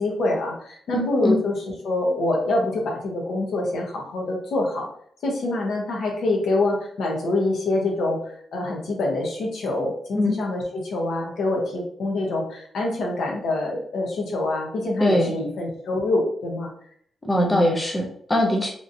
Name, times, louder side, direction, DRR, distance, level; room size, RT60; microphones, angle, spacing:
voice 1, 0.0-4.9 5.2-16.7 17.3-17.7, left 2 dB, 65° left, 0 dB, 0.9 m, -25 dB
voice 2, 0.9-1.4 10.2-10.4 15.0-15.3 17.2-18.7, left 1 dB, 10° left, 0 dB, 0.4 m, -21 dB
3.0 x 2.6 x 2.6 m, 0.63 s
wide cardioid pair, 160°, 0 cm